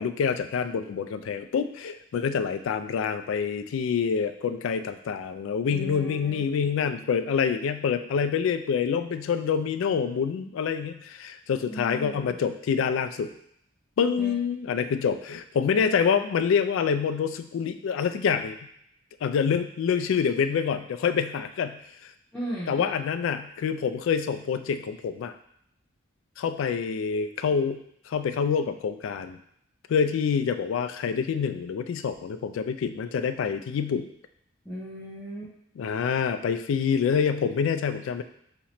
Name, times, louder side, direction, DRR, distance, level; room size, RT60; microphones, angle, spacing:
voice 1, 0.0-13.3 14.0-18.6 19.2-21.8 22.7-25.3 26.4-29.4 29.9-34.1 35.8-38.2, left 6 dB, 80° left, 10 dB, 0.3 m, -26 dB
voice 2, 5.7-6.4 11.7-12.3 14.2-14.4 22.3-22.9 34.6-35.5, equal, ahead, -12 dB, 0.7 m, -37 dB
3.0 x 2.8 x 4.2 m, 0.71 s
head